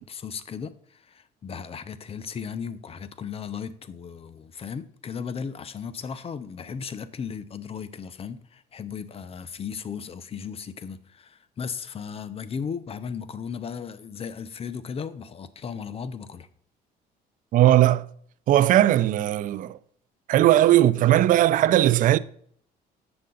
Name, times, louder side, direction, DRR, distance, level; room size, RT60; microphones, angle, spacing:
voice 1, 0.0-16.5, left 6 dB, 35° left, 0.6 m, -36 dB
voice 2, 17.5-18.1 18.5-19.8 20.3-22.2, right 13 dB, 55° right, 0.4 m, -18 dB
7.8 x 6.7 x 3.8 m
cardioid pair, 110°, 17 cm